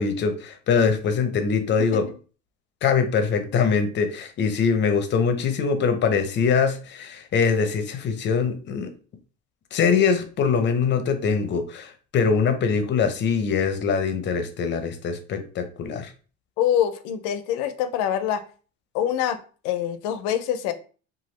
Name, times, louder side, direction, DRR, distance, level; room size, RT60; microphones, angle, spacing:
voice 1, 0.0-2.1 2.8-8.9 9.7-16.1, left 5 dB, 35° left, 7 dB, 0.6 m, -23 dB
voice 2, 16.6-18.4 18.9-19.4 19.6-20.7, left 10 dB, 85° left, 11 dB, 0.5 m, -25 dB
2.9 x 2.4 x 3.1 m, 0.38 s
cardioid pair, 120°, 31 cm